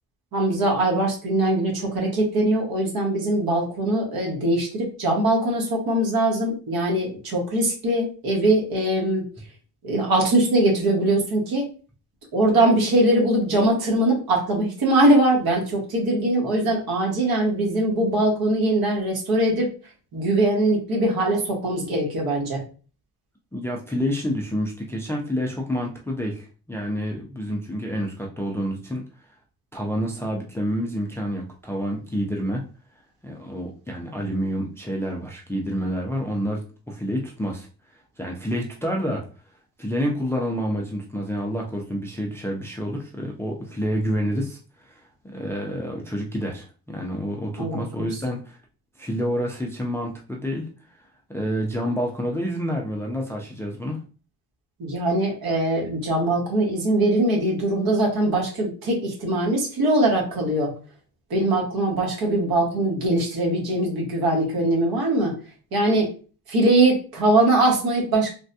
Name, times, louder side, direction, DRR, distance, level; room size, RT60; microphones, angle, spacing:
voice 1, 0.3-9.2 9.8-11.7 12.3-19.7 20.1-22.6 47.6-48.1 54.8-60.7 61.3-65.3 65.7-66.1 66.5-68.3, right 1 dB, 70° right, -1 dB, 1.4 m, -21 dB
voice 2, 23.5-29.0 29.7-32.6 33.2-37.7 38.2-39.2 39.8-44.6 44.8-45.0 45.3-48.6 49.0-50.7 51.3-54.0, equal, 5° left, -1 dB, 0.3 m, -28 dB
3.4 x 2.2 x 2.6 m, 0.37 s
cardioid pair, 130°, 38 cm